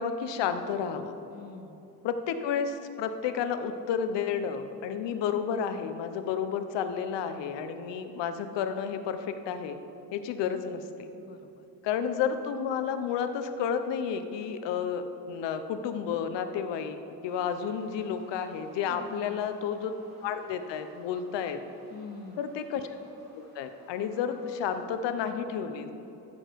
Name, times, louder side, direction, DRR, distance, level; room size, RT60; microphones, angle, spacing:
voice 1, 0.0-1.1 2.0-9.8 10.1-11.1 11.8-17.0 17.2-19.9 20.2-21.6 22.4-23.0 23.3-25.9, left 7 dB, 85° left, 9 dB, 0.8 m, -31 dB
voice 2, 1.3-1.8 11.1-11.7 18.9-19.5 21.9-22.5, left 5 dB, 25° left, 9 dB, 0.4 m, -45 dB
sound 1, 17.2-24.8, right 1 dB, 25° right, 2.7 m, -58 dB
14.0 x 6.9 x 4.5 m, 3.0 s
cardioid pair, 155°, 42 cm